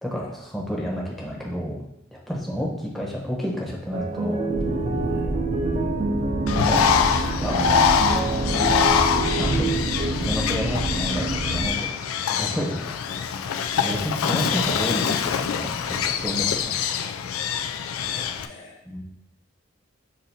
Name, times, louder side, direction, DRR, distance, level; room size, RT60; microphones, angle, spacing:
voice 1, 0.0-1.8 2.1-4.4 6.5-6.9 7.4-7.8 9.4-9.7 10.1-12.0 12.4-12.8 13.1-13.3 13.8-16.8 18.8-19.0, equal, ahead, -3 dB, 0.8 m, -30 dB
sound 1, 3.9-10.1, right 3 dB, 30° right, 0.3 m, -28 dB
sound 2, 4.5-11.7, right 1 dB, 75° right, 0.6 m, -28 dB
Bird, 6.5-18.5, left 7 dB, 85° left, 0.3 m, -24 dB
voice 2, 18.1-18.8, left 2 dB, 70° left, 2 dB, 0.7 m, -47 dB
7.5 x 2.6 x 2.7 m, 0.83 s
head